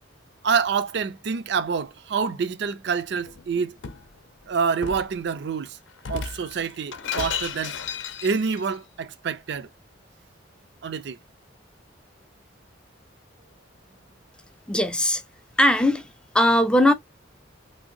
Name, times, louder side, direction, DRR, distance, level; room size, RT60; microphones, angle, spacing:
voice 1, 0.4-3.8 4.5-5.8 6.1-7.8 8.2-9.7 10.8-11.2, right 5 dB, 60° right, 0.4 m, -27 dB
Shatter, 3.2-4.1 4.8-5.1 6.0-8.6, left 6 dB, 75° left, 0.6 m, -33 dB
voice 2, 14.7-15.2 15.6-16.1 16.3-16.9, left 1 dB, 5° left, 0.4 m, -19 dB
3.4 x 2.7 x 2.5 m
head